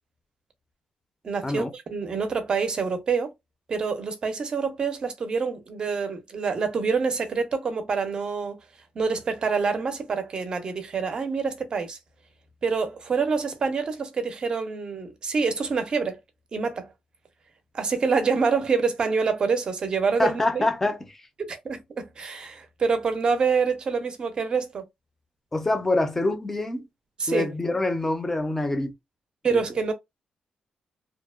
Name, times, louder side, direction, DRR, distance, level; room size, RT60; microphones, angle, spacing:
voice 1, 1.2-3.3 3.7-8.6 8.9-12.0 12.6-16.2 16.5-16.9 17.7-20.7 21.4-24.8 27.2-27.5 29.4-29.9, right 5 dB, 40° right, 0.5 m, -26 dB
voice 2, 20.2-21.2 25.5-26.9 27.3-28.9 29.5-29.6, left 2 dB, 15° left, 0.4 m, -25 dB
2.7 x 2.1 x 2.3 m
wide cardioid pair, 155°, 2 cm